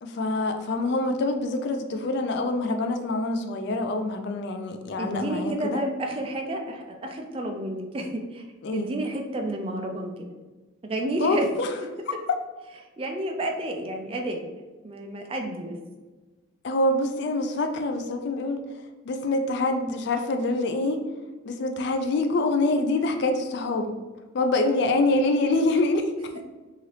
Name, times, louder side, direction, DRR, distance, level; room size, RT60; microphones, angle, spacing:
voice 1, 0.0-5.8 8.6-8.9 11.2-11.7 12.1-12.2 16.6-18.6 19.0-21.0 21.5-23.9 24.3-26.1, left 2 dB, 55° left, 6 dB, 0.3 m, -25 dB
voice 2, 5.0-8.4 8.7-10.3 10.8-11.5 13.0-14.4 14.8-15.8, right 1 dB, 30° right, 3 dB, 0.3 m, -30 dB
2.7 x 2.4 x 3.2 m, 1.2 s
head